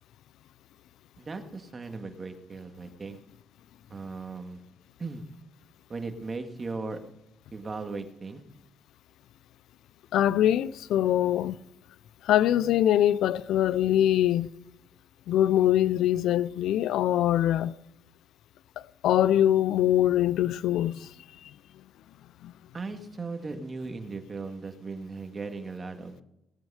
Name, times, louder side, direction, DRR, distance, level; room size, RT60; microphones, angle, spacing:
voice 1, 1.2-3.2 3.9-4.6 5.0-5.2 5.9-7.0 7.5-8.4 22.7-26.2, right 3 dB, 30° right, 2.0 m, -37 dB
voice 2, 10.1-11.6 12.2-14.5 15.3-17.7 18.8-21.1 21.4-21.5 22.4-22.5, left 12 dB, 80° left, 0.5 m, -23 dB
18.5 x 9.3 x 5.0 m
cardioid pair, 90°, 0 cm